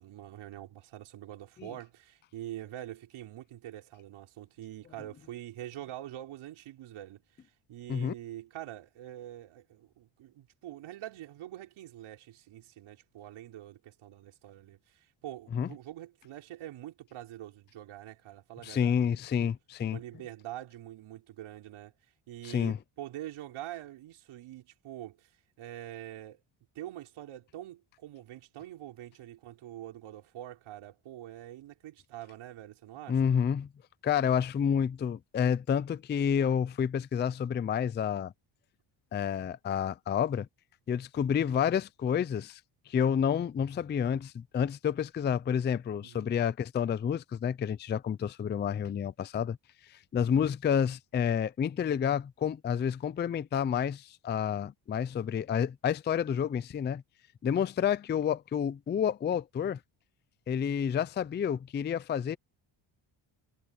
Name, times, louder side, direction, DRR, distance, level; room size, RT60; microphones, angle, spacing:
voice 1, 0.0-7.2 7.7-19.5 19.8-21.9 22.3-25.3 25.6-26.4 26.7-33.2 46.0-46.3, right 13 dB, 85° right, 5.1 m, -45 dB
voice 2, 18.6-20.0 22.4-22.8 33.1-33.7 34.0-38.3 39.1-40.5 40.9-42.6 42.9-49.6 49.9-57.0 57.4-59.8 60.5-62.4, left 8 dB, 25° left, 0.4 m, -29 dB
cardioid pair, 150°, 47 cm